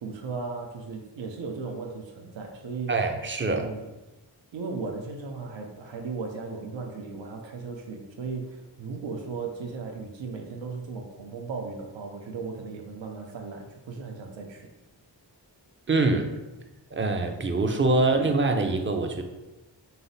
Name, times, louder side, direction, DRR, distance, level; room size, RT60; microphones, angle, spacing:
voice 1, 0.0-2.9 3.4-3.9 4.5-14.7, right 4 dB, 80° right, 2 dB, 0.6 m, -36 dB
voice 2, 2.9-3.7 15.9-16.3 16.9-19.2, right 3 dB, 30° right, 5 dB, 0.4 m, -24 dB
5.5 x 2.0 x 3.9 m, 1.0 s
wide cardioid pair, 75°, 44 cm